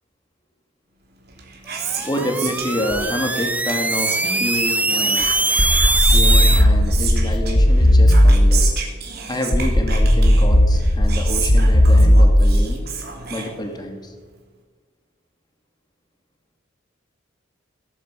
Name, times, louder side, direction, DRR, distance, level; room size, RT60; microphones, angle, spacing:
Whispering, 1.2-14.1, right 6 dB, 55° right, 3.2 m, -32 dB
sound 1, 1.8-6.6, right 2 dB, 10° right, 0.6 m, -21 dB
voice 1, 2.1-5.3 6.1-8.7 9.3-12.8 13.3-14.1, left 1 dB, 20° left, 4 dB, 2.6 m, -28 dB
sound 2, 5.6-8.8 9.5-12.8, equal, 65° left, 1.8 m, -15 dB
17.5 x 9.2 x 8.4 m, 1.4 s
head